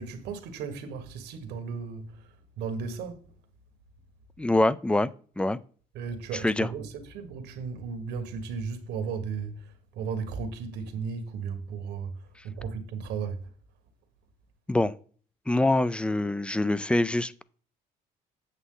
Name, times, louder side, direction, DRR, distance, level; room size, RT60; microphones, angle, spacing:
voice 1, 0.0-2.2 2.6-3.2 5.9-12.2 12.4-13.5, right 5 dB, 85° right, 1.5 m, -35 dB
voice 2, 4.4-5.1 5.4-5.6 6.4-6.7 14.7-14.9 15.5-17.4, left 2 dB, 5° left, 0.4 m, -24 dB
8.2 x 7.0 x 3.8 m
cardioid pair, 110°, 17 cm